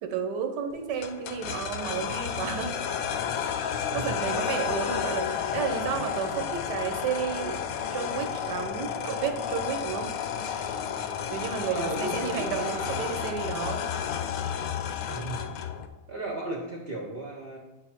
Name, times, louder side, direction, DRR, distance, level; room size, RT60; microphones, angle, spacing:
voice 1, 0.0-2.7 3.9-7.6 7.9-10.1 11.3-13.9, right 7 dB, 80° right, 5 dB, 1.4 m, -32 dB
sound 1, 1.0-15.9, left 8 dB, 70° left, 0.9 m, -31 dB
voice 2, 3.8-4.2 11.7-13.1 15.0-15.4 16.1-17.6, right 1 dB, 45° right, 0 dB, 0.9 m, -35 dB
8.4 x 4.2 x 4.4 m, 1.1 s
omnidirectional pair, 1.8 m